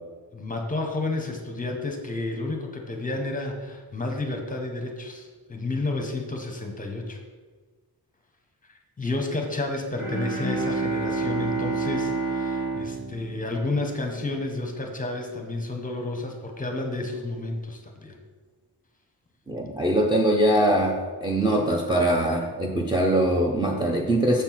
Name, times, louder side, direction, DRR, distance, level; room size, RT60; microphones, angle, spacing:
voice 1, 0.3-7.2 9.0-18.2, left 2 dB, 20° left, 2 dB, 0.9 m, -31 dB
Bowed string instrument, 9.9-14.2, right 3 dB, 50° right, 2.3 m, -29 dB
voice 2, 19.5-24.4, right 1 dB, 10° right, 1 dB, 0.6 m, -22 dB
7.1 x 4.4 x 5.8 m, 1.4 s
wide cardioid pair, 175°, 42 cm